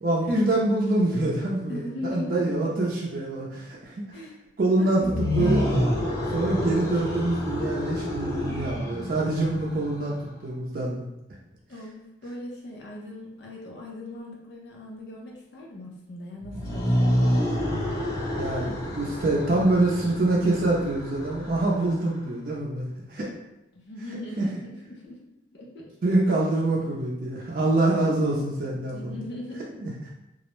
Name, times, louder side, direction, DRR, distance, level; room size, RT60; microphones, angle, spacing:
voice 1, 0.0-4.0 4.6-5.6 6.3-10.1 10.4-11.1 18.4-23.3 24.4-24.5 26.0-29.3 29.8-29.9, right 2 dB, 50° right, -3 dB, 0.4 m, -25 dB
voice 2, 1.7-2.4 4.1-4.4 4.8-5.3 11.7-17.5 23.7-25.2 25.5-25.9 26.5-26.6 28.9-29.6, left 1 dB, 70° left, -2 dB, 0.6 m, -39 dB
sound 1, 5.0-10.2 16.4-22.1, equal, 20° left, 0.5 m, -28 dB
2.3 x 2.0 x 2.9 m, 0.90 s
head